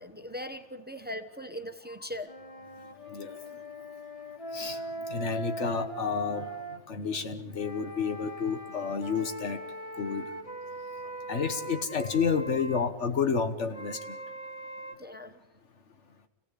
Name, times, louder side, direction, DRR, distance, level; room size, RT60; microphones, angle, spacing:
voice 1, 0.0-2.3 11.0-11.2 15.0-15.4, equal, 10° right, 8 dB, 1.0 m, -40 dB
sound 1, 2.3-6.8 7.5-12.9 13.7-14.9, right 1 dB, 30° left, 1.8 m, -40 dB
voice 2, 5.1-6.5 6.9-9.6 9.9-10.2 11.3-14.2, left 5 dB, 85° left, 8 dB, 1.7 m, -30 dB
27.0 x 16.5 x 8.4 m, 1.1 s
omnidirectional pair, 1.2 m